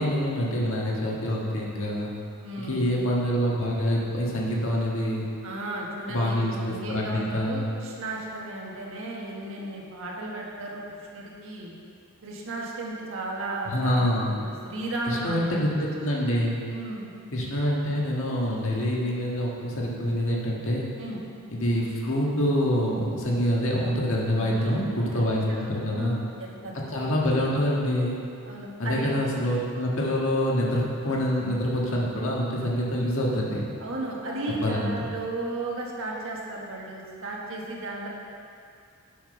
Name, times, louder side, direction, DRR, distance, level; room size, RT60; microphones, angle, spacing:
voice 1, 0.0-2.1 2.6-5.2 6.1-7.7 13.6-14.3 15.0-16.6 17.3-20.9 21.5-26.2 26.9-28.2 28.8-33.7 34.6-34.9, equal, 65° left, -3 dB, 1.6 m, -26 dB
voice 2, 2.4-2.9 5.4-10.8 11.1-11.7 12.2-14.1 14.3-15.7 16.7-17.1 21.0-21.2 24.3-25.1 25.5-26.7 27.0-27.3 28.4-29.1 33.8-38.1, right 2 dB, 65° right, -2 dB, 1.5 m, -35 dB
8.4 x 6.0 x 5.5 m, 2.4 s
head